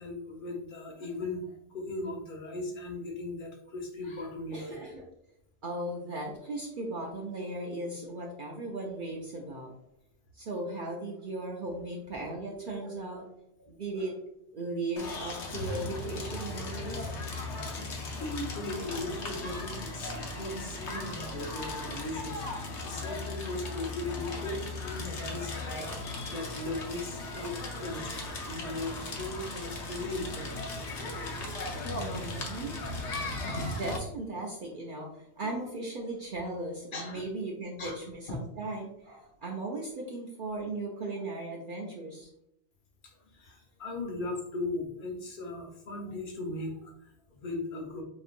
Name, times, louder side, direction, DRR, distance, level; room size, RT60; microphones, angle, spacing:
voice 1, 0.0-4.7 13.6-13.7 17.6-17.8 18.1-30.9 35.4-35.5 36.9-37.2 37.8-38.0 38.3-38.4 43.0-48.0, left 2 dB, 50° left, 0 dB, 1.0 m, -38 dB
voice 2, 4.5-5.1 5.6-9.7 10.3-13.3 13.7-14.2 14.5-17.1 31.9-33.3 33.7-42.3, right 2 dB, 55° right, -1 dB, 0.7 m, -37 dB
Crackle, 15.0-34.0, left 2 dB, 75° left, 1.0 m, -37 dB
5.1 x 2.7 x 2.5 m, 0.78 s
omnidirectional pair, 1.2 m